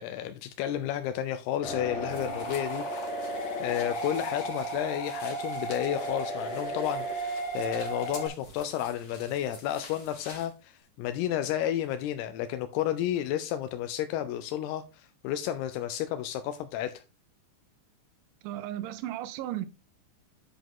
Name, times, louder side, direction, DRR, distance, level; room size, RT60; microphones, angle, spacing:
voice 1, 0.0-2.8 3.6-17.0, left 11 dB, 80° left, 2.3 m, -32 dB
sound 1, 1.6-8.3, right 1 dB, 65° left, 3.4 m, -34 dB
sound 2, 2.1-10.5, left 3 dB, 45° left, 1.3 m, -49 dB
voice 2, 18.4-19.7, right 13 dB, 85° right, 3.1 m, -35 dB
10.0 x 5.1 x 3.7 m
omnidirectional pair, 5.2 m